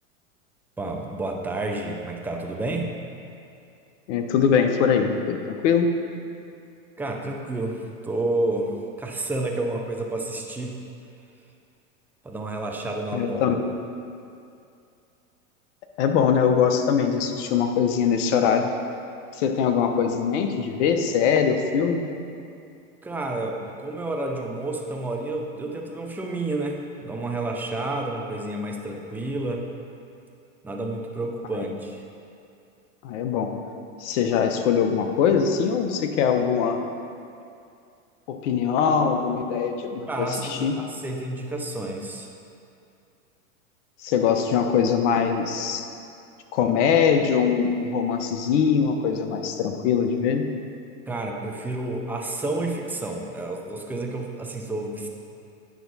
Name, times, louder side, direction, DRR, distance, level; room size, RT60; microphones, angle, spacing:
voice 1, 0.8-3.0 7.0-10.8 12.2-13.6 23.0-29.6 30.6-32.0 40.1-42.3 51.1-55.1, right 2 dB, 5° right, 0 dB, 0.3 m, -30 dB
voice 2, 4.1-5.9 13.1-13.6 16.0-18.7 19.3-22.0 33.0-33.5 34.0-36.8 38.3-40.7 44.0-45.9 46.5-50.4, left 7 dB, 60° left, 5 dB, 0.9 m, -22 dB
9.4 x 5.7 x 4.0 m, 2.5 s
hypercardioid pair, 120°, 41 cm